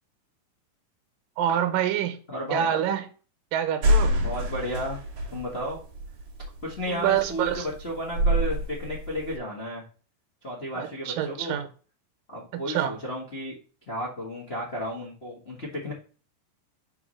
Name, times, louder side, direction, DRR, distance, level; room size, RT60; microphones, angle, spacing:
voice 1, 1.4-2.2 2.5-3.0 3.5-4.2 6.9-7.7 10.7-11.7 12.7-12.9, right 10 dB, 75° right, 8 dB, 2.5 m, -26 dB
voice 2, 2.3-2.7 4.2-5.0 5.3-5.8 6.6-9.8 10.4-11.6 12.3-13.6 13.9-15.9, equal, 70° left, -4 dB, 0.5 m, -33 dB
sound 1, 3.8-9.4, equal, 50° right, 2.1 m, -27 dB
4.9 x 4.9 x 6.1 m, 0.38 s
omnidirectional pair, 4.2 m